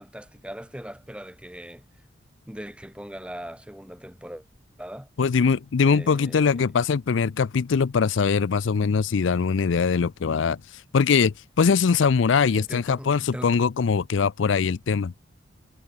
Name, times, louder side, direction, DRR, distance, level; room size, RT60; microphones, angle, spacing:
voice 1, 0.0-1.8 2.5-4.4 4.8-5.1 5.8-6.7 12.4-13.6, equal, 5° right, 4.9 m, -40 dB
voice 2, 5.2-15.1, left 5 dB, 75° left, 0.5 m, -22 dB
head